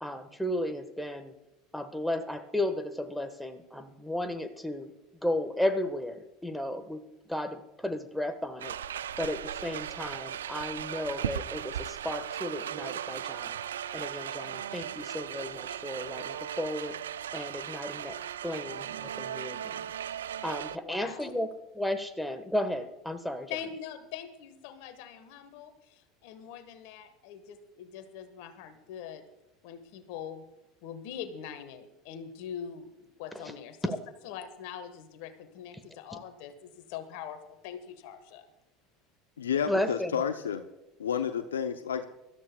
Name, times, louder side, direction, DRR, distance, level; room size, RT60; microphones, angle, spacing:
voice 1, 0.0-1.3 1.7-4.9 5.2-7.0 7.3-8.7 9.2-13.6 13.9-17.0 17.3-19.8 20.4-21.5 21.7-23.5 33.3-33.4 33.9-34.0 39.7-40.1, left 1 dB, 5° left, 8 dB, 1.3 m, -34 dB
sound 1, 8.6-20.8, right 10 dB, 85° right, 0.3 m, -37 dB
voice 2, 20.7-21.3 23.5-29.2 29.6-30.4 30.8-33.9 34.2-38.5, left 8 dB, 65° left, 10 dB, 1.4 m, -43 dB
voice 3, 39.4-40.6 41.0-42.1, left 7 dB, 85° left, 8 dB, 0.6 m, -30 dB
24.0 x 13.5 x 2.3 m, 0.98 s
hypercardioid pair, 75°, 0 cm